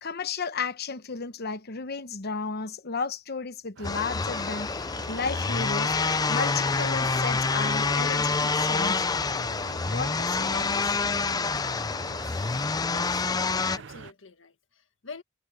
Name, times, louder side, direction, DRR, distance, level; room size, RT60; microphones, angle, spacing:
voice 1, 0.0-5.9 6.3-9.0 9.9-11.0 11.7-11.8, left 4 dB, 55° left, 1.0 m, -33 dB
sound 1, 3.8-13.8, left 4 dB, 20° left, 0.4 m, -27 dB
sound 2, 3.8-14.1, right 5 dB, 65° right, 0.7 m, -45 dB
voice 2, 12.9-15.2, left 4 dB, 70° left, 1.7 m, -45 dB
head